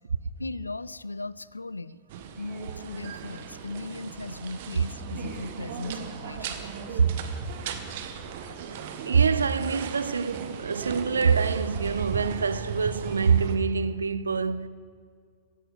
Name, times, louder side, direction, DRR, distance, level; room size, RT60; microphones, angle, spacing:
voice 1, 0.4-2.0 2.4-7.0, left 2 dB, 80° left, 0.3 m, -38 dB
sound 1, 2.1-13.6, right 7 dB, 55° right, 1.1 m, -37 dB
sound 2, 2.3-2.7 3.6-3.7 5.1-5.7 9.8-10.4 11.7-12.3 12.6-12.7 13.0-13.4, right 2 dB, 15° right, 3.0 m, -57 dB
voice 2, 9.1-14.7, right 5 dB, 75° right, 0.5 m, -25 dB
16.0 x 15.5 x 3.9 m
figure-of-eight pair, 90°, 0 cm